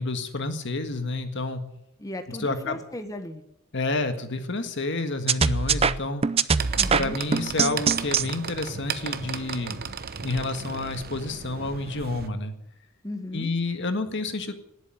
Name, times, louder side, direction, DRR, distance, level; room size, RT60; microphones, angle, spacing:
voice 1, 0.0-1.6 2.4-2.8 3.7-6.3 6.9-9.8 10.2-12.5 13.3-14.5, left 2 dB, 60° left, 7 dB, 1.8 m, -29 dB
voice 2, 2.0-3.4 6.8-7.2 13.0-13.5, left 1 dB, 15° left, 6 dB, 1.4 m, -36 dB
sound 1, 5.3-8.3, right 5 dB, 30° right, 0.5 m, -22 dB
sound 2, 6.6-12.3, right 6 dB, 50° right, 0.9 m, -35 dB
19.0 x 8.2 x 9.4 m, 0.78 s
head